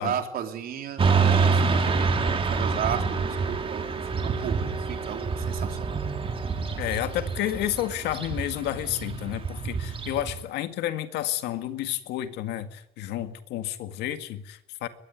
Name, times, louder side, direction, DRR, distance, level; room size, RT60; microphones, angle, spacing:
voice 1, 0.0-3.9 4.1-4.6 4.9-6.0, right 9 dB, 60° right, 5 dB, 4.0 m, -34 dB
Motorcycle / Traffic noise roadway noise, 1.0-10.4, right 4 dB, 30° right, 3.0 m, -27 dB
voice 2, 6.8-14.9, left 13 dB, 85° left, 9 dB, 2.0 m, -31 dB
22.5 x 20.5 x 9.5 m, 0.79 s
cardioid pair, 110°, 17 cm